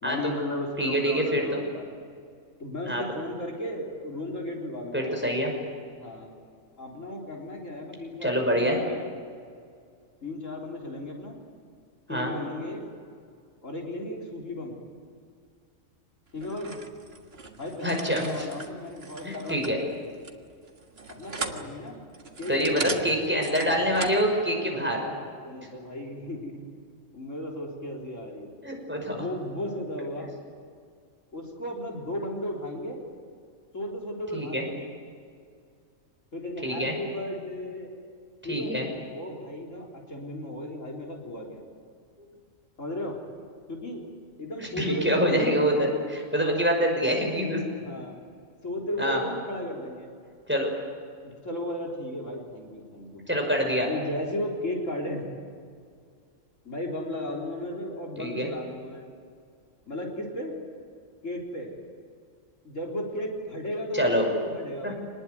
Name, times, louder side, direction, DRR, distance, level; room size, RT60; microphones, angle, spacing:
voice 1, 0.0-1.8 2.6-5.1 6.0-6.3 6.8-9.1 10.2-11.4 12.1-12.9 13.6-14.8 16.3-16.7 17.5-20.0 21.1-22.0 22.4-23.2 24.7-26.6 27.1-28.5 29.1-30.3 31.3-33.0 33.7-34.9 36.3-37.9 38.4-41.7 42.8-43.2 43.7-44.0 44.4-46.0 47.8-48.2 48.6-50.1 51.2-53.2 53.9-55.3 56.6-59.0 59.9-60.5 61.2-61.7 62.6-64.9, left 1 dB, 70° left, 1 dB, 4.3 m, -35 dB
voice 2, 0.8-1.6 2.9-3.0 4.9-5.5 8.2-8.8 12.1-12.3 17.8-18.5 19.2-19.8 22.5-25.0 28.6-29.2 34.3-34.6 36.6-36.9 38.5-38.9 44.6-47.6 49.0-49.2 50.5-50.7 53.3-53.9 58.2-58.5 63.9-64.2 64.8-64.9, equal, 10° right, 1 dB, 5.8 m, -26 dB
sound 1, 16.4-24.3, right 4 dB, 50° right, 1.9 m, -39 dB
26.5 x 20.0 x 9.5 m, 2.2 s
omnidirectional pair, 1.4 m